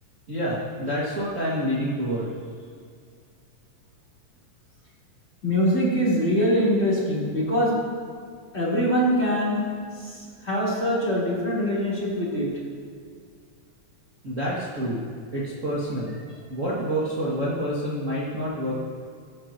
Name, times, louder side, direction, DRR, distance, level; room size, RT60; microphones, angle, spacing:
voice 1, 0.3-2.3 14.2-15.0 15.3-16.2 16.5-18.7, equal, 30° right, -8 dB, 2.1 m, -28 dB
voice 2, 5.4-7.7 8.5-9.6 10.4-12.5, equal, 20° left, -6 dB, 3.8 m, -23 dB
22.0 x 11.0 x 3.0 m, 2.2 s
omnidirectional pair, 3.4 m